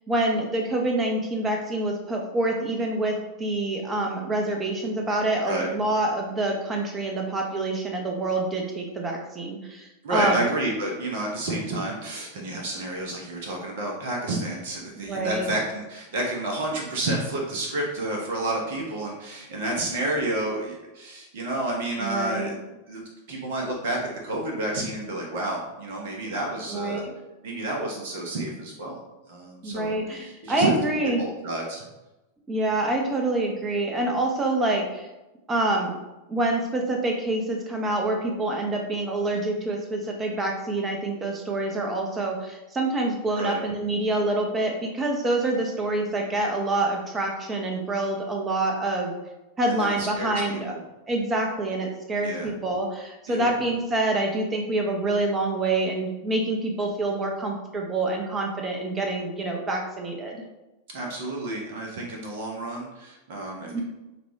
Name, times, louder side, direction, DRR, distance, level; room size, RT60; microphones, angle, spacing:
voice 1, 0.1-10.4 15.0-15.5 22.0-22.5 26.7-27.1 29.6-31.2 32.5-35.1 35.5-36.0 36.3-49.1 49.6-50.8 51.1-60.4 63.7-63.8, right 2 dB, 20° right, 2 dB, 0.7 m, -26 dB
voice 2, 10.0-22.5 22.9-27.0 27.4-29.0 29.3-30.7 31.2-31.8 43.3-43.6 49.7-50.8 52.2-52.5 53.3-53.6 60.9-63.8, right 1 dB, 55° right, -1 dB, 0.8 m, -30 dB
4.9 x 2.3 x 3.1 m, 1.0 s
figure-of-eight pair, 90°, 0 cm